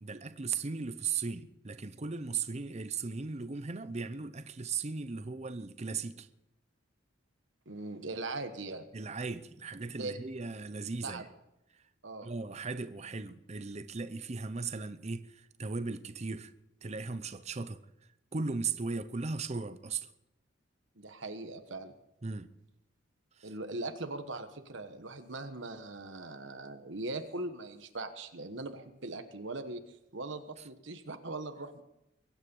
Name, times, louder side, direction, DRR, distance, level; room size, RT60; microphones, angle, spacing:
voice 1, 0.0-6.3 8.9-11.3 12.2-16.5 16.8-17.8 18.3-20.1 22.2-22.5 23.4-23.5 30.6-30.7, right 4 dB, 35° right, 0.7 m, -37 dB
voice 2, 7.7-8.9 10.0-10.2 11.0-11.2 12.0-12.3 21.0-21.9 23.4-31.8, right 2 dB, 65° right, 1.3 m, -40 dB
23.0 x 9.6 x 5.5 m
head